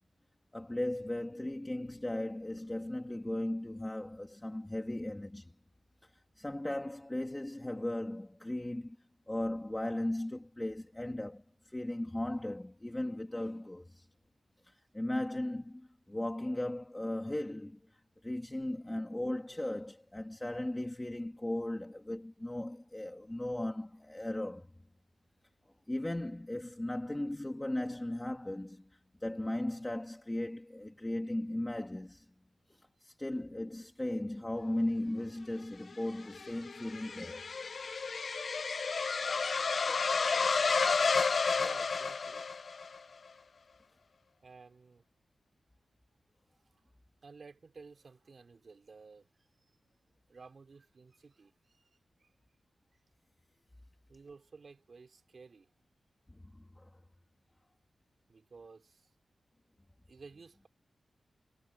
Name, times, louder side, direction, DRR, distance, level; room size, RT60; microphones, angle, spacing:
voice 1, 0.5-5.5 6.0-9.0 9.3-14.1 14.6-24.7 25.9-32.3 32.7-37.5 56.3-57.0, left 1 dB, 10° left, 2.5 m, -37 dB
sound 1, 35.9-43.0, left 4 dB, 50° left, 0.6 m, -31 dB
voice 2, 41.5-42.5 42.7-42.8 44.4-45.1 46.7-46.8 47.2-49.3 50.3-51.9 52.2-52.3 54.1-55.7 58.3-59.1 60.1-60.7, right 4 dB, 45° right, 3.8 m, -54 dB
wide cardioid pair, 150°, 0 cm